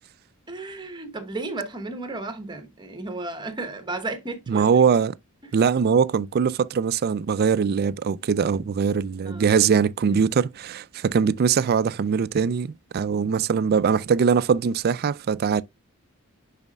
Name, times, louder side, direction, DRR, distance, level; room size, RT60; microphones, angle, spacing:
voice 1, 0.5-4.7 9.2-9.5 10.1-10.2, right 2 dB, 20° right, 1.1 m, -33 dB
voice 2, 4.5-5.2 5.5-15.6, right 6 dB, 45° right, 0.3 m, -22 dB
10.5 x 4.1 x 2.3 m
head